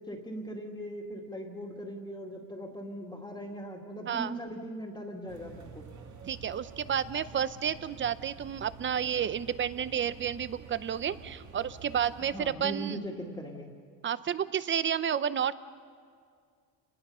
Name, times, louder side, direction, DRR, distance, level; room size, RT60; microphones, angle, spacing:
voice 1, 0.0-5.8 12.3-13.7, right 1 dB, 10° left, -3 dB, 2.3 m, -39 dB
sound 1, 5.3-12.5, right 5 dB, 50° right, 2.8 m, -49 dB
voice 2, 6.3-13.0 14.0-15.5, right 8 dB, 30° right, 15 dB, 0.7 m, -31 dB
28.0 x 20.5 x 5.6 m, 2.1 s
cardioid pair, 120°, 37 cm